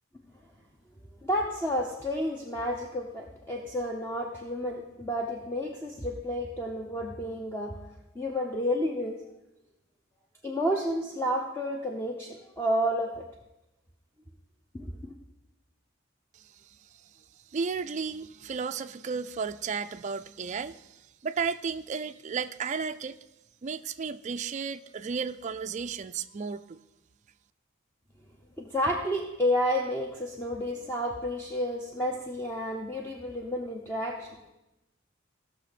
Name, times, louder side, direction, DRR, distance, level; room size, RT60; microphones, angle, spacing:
voice 1, 1.2-7.7 8.2-9.2 10.4-13.1 28.6-34.3, equal, 10° left, -1 dB, 0.8 m, -30 dB
voice 2, 17.5-23.2 23.6-26.8, right 5 dB, 35° right, 10 dB, 0.3 m, -33 dB
16.5 x 6.2 x 4.2 m, 0.94 s
head